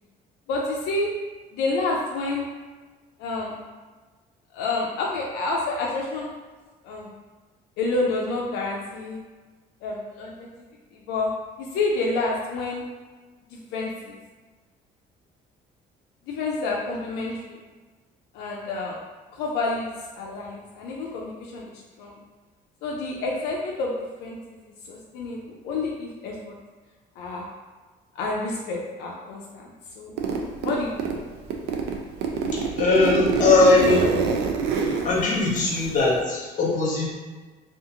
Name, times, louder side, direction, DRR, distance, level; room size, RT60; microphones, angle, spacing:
voice 1, 0.5-1.1 1.5-2.4 3.2-3.6 4.5-6.3 6.8-7.1 7.8-9.2 9.8-10.5 10.9-11.3 11.6-12.8 13.5-14.2 16.3-17.6 18.3-19.0 19.3-19.9 20.2-22.2 22.8-23.9 24.2-24.6 24.9-26.5 27.2-27.5 28.1-29.7 30.0-30.1 30.6-31.2, left 3 dB, 90° left, -3 dB, 0.4 m, -29 dB
Zipper (clothing), 30.2-31.2 31.5-36.2, right 5 dB, 85° right, 0.4 m, -26 dB
voice 2, 32.5-34.1 35.0-37.1, left 3 dB, 50° left, -4 dB, 0.9 m, -20 dB
2.5 x 2.4 x 2.7 m, 1.3 s
cardioid pair, 110°, 17 cm